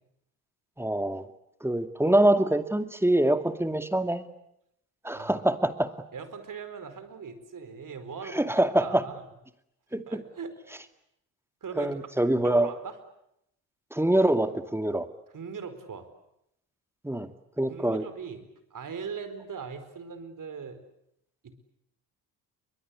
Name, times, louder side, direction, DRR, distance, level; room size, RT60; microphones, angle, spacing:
voice 1, 0.8-1.3 1.6-4.3 5.0-5.9 8.3-9.0 9.9-10.2 11.8-12.7 13.9-15.1 17.0-17.3 17.6-18.0, right 1 dB, 5° right, 9 dB, 2.3 m, -24 dB
voice 2, 6.1-8.5 8.8-9.3 9.9-10.8 11.6-12.0 12.4-13.0 15.3-16.1 17.7-20.8 21.4-21.5, right 6 dB, 40° right, 10 dB, 4.6 m, -40 dB
29.5 x 23.0 x 8.5 m, 0.80 s
figure-of-eight pair, 50°, 49 cm